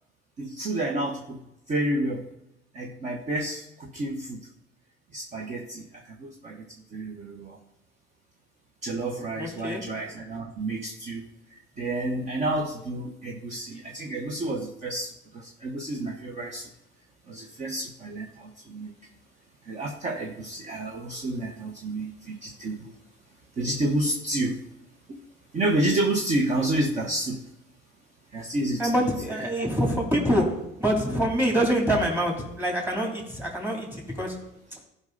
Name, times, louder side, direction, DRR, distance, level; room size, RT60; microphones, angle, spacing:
voice 1, 0.4-1.4 1.7-2.3 2.7-4.4 5.1-6.6 6.9-7.6 8.8-11.2 11.8-16.7 17.3-18.9 19.6-22.9 23.6-24.6 25.1-25.2 25.5-27.4 28.3-29.5, right 1 dB, 35° right, 1 dB, 1.1 m, -30 dB
voice 2, 9.4-9.8 28.8-30.5 30.8-34.3, equal, 10° right, 0 dB, 2.7 m, -25 dB
15.0 x 5.5 x 3.9 m, 0.88 s
cardioid pair, 130°, 20 cm